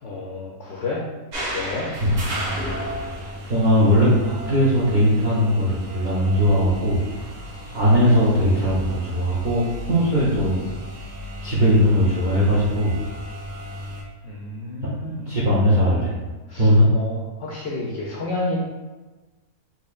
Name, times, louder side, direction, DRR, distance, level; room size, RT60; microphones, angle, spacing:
voice 1, 0.0-1.0 1.5-1.9 14.2-15.3 16.5-18.7, left 2 dB, 65° left, -3 dB, 0.7 m, -30 dB
sound 1, 1.3-14.0, equal, 75° right, 1.5 m, -34 dB
voice 2, 3.5-7.1 7.7-10.7 11.4-13.0 15.3-16.1 16.6-16.9, equal, 50° right, -7 dB, 0.6 m, -19 dB
4.2 x 2.9 x 2.4 m, 1.2 s
omnidirectional pair, 1.6 m